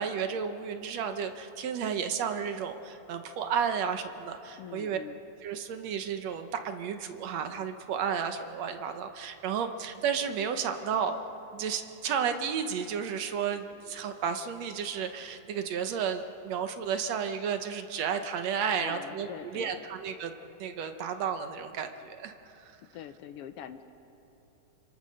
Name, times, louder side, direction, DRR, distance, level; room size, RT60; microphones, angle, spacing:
voice 1, 0.0-5.0 5.4-20.3 20.6-22.7, right 7 dB, 65° right, 7 dB, 2.0 m, -32 dB
voice 2, 4.6-5.2 18.8-19.9 22.8-23.9, left 9 dB, 85° left, 9 dB, 1.3 m, -44 dB
27.0 x 26.0 x 6.4 m, 3.0 s
omnidirectional pair, 3.6 m